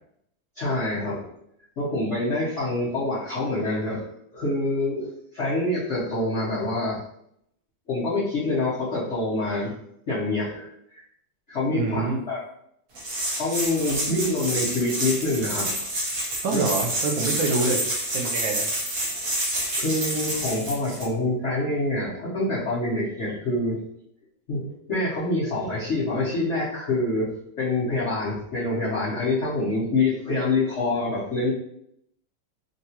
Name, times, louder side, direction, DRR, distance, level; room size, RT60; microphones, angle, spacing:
voice 1, 0.6-1.3 1.8-4.0 4.3-7.0 7.9-9.7 10.1-11.0 11.5-12.4 13.4-15.7 16.5-16.7 17.5-17.6 19.8-23.8 24.5-31.5, left 2 dB, 55° left, -10 dB, 0.8 m, -26 dB
voice 2, 11.7-12.2 16.4-17.8 18.1-18.7, right 3 dB, 75° right, 0 dB, 1.2 m, -26 dB
sound 1, 13.0-21.0, right 1 dB, 55° right, 1.0 m, -28 dB
3.8 x 2.3 x 2.8 m, 0.72 s
omnidirectional pair, 2.4 m